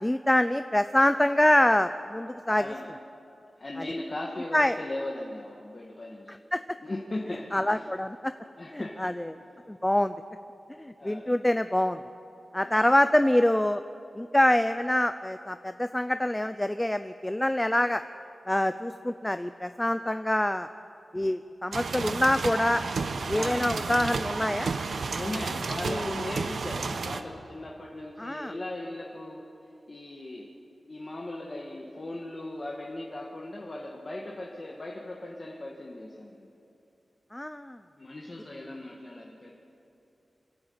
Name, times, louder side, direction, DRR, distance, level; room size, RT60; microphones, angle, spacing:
voice 1, 0.0-2.6 4.5-4.8 6.5-6.6 7.5-8.3 8.7-9.3 9.7-10.1 10.8-12.0 12.5-13.8 14.2-18.0 18.5-20.7 21.1-22.8 23.3-24.7 25.9-26.0 28.2-28.5 37.3-37.8, left 1 dB, 10° left, 10 dB, 0.5 m, -25 dB
voice 2, 2.6-2.9 3.6-6.4 6.8-7.9 8.6-9.2 11.0-11.4 12.6-12.9 23.3-23.8 25.1-29.4 29.9-30.5 30.9-36.5 38.0-39.6, left 2 dB, 35° left, -2 dB, 1.9 m, -38 dB
sound 1, 21.7-27.2, right 4 dB, 80° right, 1.0 m, -32 dB
26.0 x 12.0 x 8.8 m, 2.8 s
wide cardioid pair, 90°, 0 cm